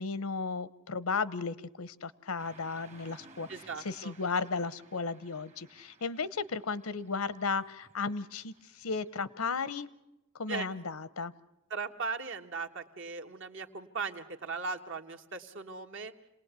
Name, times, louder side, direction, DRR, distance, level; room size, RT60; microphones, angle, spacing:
voice 1, 0.0-3.5 3.8-9.9 10.3-11.3, left 4 dB, 80° left, 18 dB, 0.8 m, -34 dB
Car passing by / Traffic noise roadway noise, 2.4-9.2, right 3 dB, 30° right, 1.2 m, -59 dB
voice 2, 3.5-4.1 10.5-10.7 11.7-16.1, right 4 dB, 60° right, 6 dB, 1.4 m, -38 dB
27.0 x 19.0 x 8.2 m, 0.94 s
head